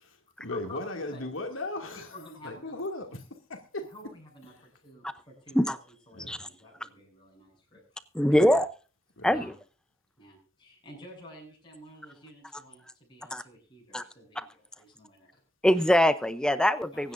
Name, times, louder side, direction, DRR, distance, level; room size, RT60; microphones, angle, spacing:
voice 1, 0.0-3.9 4.5-4.6 6.1-6.4 8.3-8.6 9.2-9.4, left 2 dB, 70° left, 3 dB, 2.5 m, -38 dB
voice 2, 1.9-2.7 3.9-8.5 9.3-9.6 10.2-15.4 16.9-17.1, left 1 dB, 25° left, -2 dB, 7.7 m, -50 dB
voice 3, 8.1-8.7 9.2-9.5 13.3-13.4 13.9-14.0 14.4-14.5 15.6-17.1, equal, 5° left, 12 dB, 0.7 m, -23 dB
24.0 x 10.0 x 2.6 m, 0.36 s
head